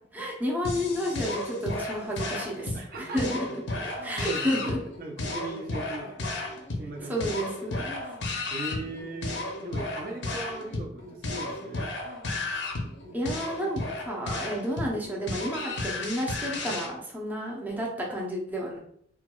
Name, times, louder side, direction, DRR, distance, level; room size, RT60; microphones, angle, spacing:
voice 1, 0.1-3.4 4.0-4.8 7.1-8.0 13.1-18.8, equal, 10° right, -3 dB, 0.6 m, -31 dB
sound 1, 0.6-16.9, left 2 dB, 75° left, 0.6 m, -34 dB
voice 2, 2.7-3.3 3.7-4.7 5.0-6.3 6.8-7.2 7.7-7.8 8.5-11.9, right 2 dB, 50° right, 0 dB, 0.5 m, -39 dB
4.4 x 2.2 x 2.2 m, 0.67 s
head